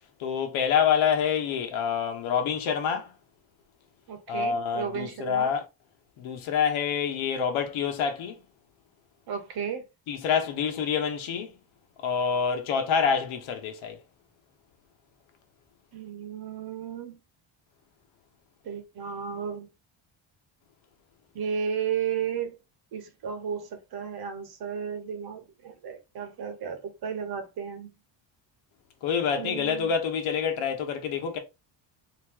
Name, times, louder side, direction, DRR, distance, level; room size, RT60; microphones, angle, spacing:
voice 1, 0.2-3.1 4.3-5.6 6.2-8.4 10.1-11.5 12.0-14.0 29.0-31.4, left 7 dB, 85° left, 1.3 m, -27 dB
voice 2, 4.1-5.5 9.3-9.8 15.9-17.2 18.6-19.7 21.3-22.6 22.9-27.9 29.4-29.9, right 7 dB, 50° right, 1.1 m, -34 dB
3.8 x 3.1 x 3.8 m
cardioid pair, 170°, 47 cm